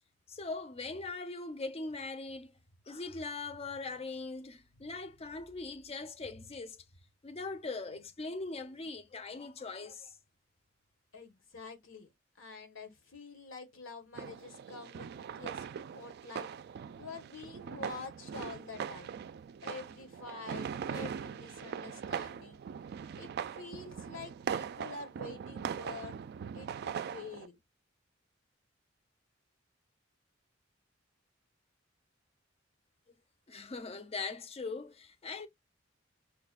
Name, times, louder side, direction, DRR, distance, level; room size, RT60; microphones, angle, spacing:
voice 1, 0.3-2.5 2.9-6.8 7.2-10.1 33.5-35.5, left 3 dB, 30° left, 0.5 m, -41 dB
voice 2, 11.1-12.1 12.4-15.1 15.3-15.6 15.9-16.5 17.0-19.1 19.6-22.6 23.2-26.2 26.5-27.6, left 4 dB, 85° left, 1.2 m, -47 dB
sound 1, 14.1-27.5, right 7 dB, 55° right, 0.3 m, -41 dB
5.8 x 2.2 x 2.4 m
head